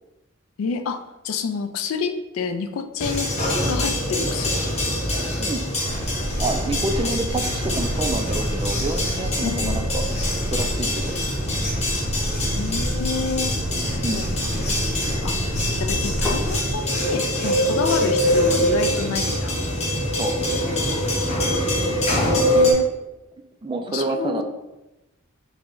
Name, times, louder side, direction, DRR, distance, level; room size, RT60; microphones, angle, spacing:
voice 1, 0.6-3.3 3.7-5.0 9.4-9.8 12.5-13.5 14.1-14.3 15.2-15.4 15.8-19.5 21.2-21.5 21.9-22.9 23.9-24.4, left 5 dB, 70° left, 8 dB, 0.3 m, -29 dB
sound 1, 3.0-22.7, left 1 dB, 30° left, 0.9 m, -24 dB
sound 2, 5.8-16.8, equal, 60° right, 0.8 m, -29 dB
voice 2, 6.4-10.1 10.5-11.1 14.0-14.3 20.2-20.4 23.6-24.4, right 2 dB, 25° right, 5 dB, 0.3 m, -28 dB
sound 3, 13.2-15.2 15.9-16.5 17.2-17.5 18.0-18.2, left 3 dB, ahead, 0.7 m, -37 dB
4.7 x 2.1 x 3.7 m, 0.98 s
head